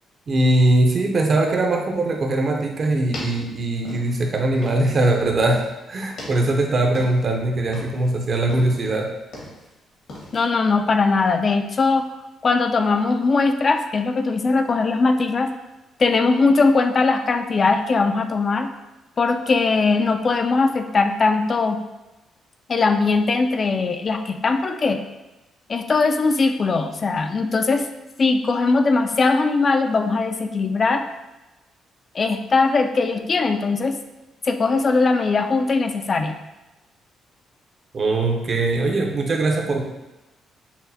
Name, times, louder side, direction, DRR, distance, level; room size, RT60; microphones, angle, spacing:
voice 1, 0.3-9.1 37.9-39.8, right 2 dB, 45° right, 2 dB, 0.6 m, -21 dB
sound 1, 2.8-5.1 5.4-5.8 6.1-7.4 7.6-8.1 8.5-9.7 10.1-10.5, left 1 dB, 75° left, 1.3 m, -39 dB
voice 2, 10.3-12.0 12.4-15.5 16.0-18.7 19.2-21.8 22.7-25.0 25.7-27.9 28.2-31.0 32.1-34.0 34.5-36.4, left 4 dB, 40° left, 6 dB, 0.3 m, -20 dB
5.6 x 2.1 x 2.7 m, 1.0 s
cardioid pair, 90°, 0 cm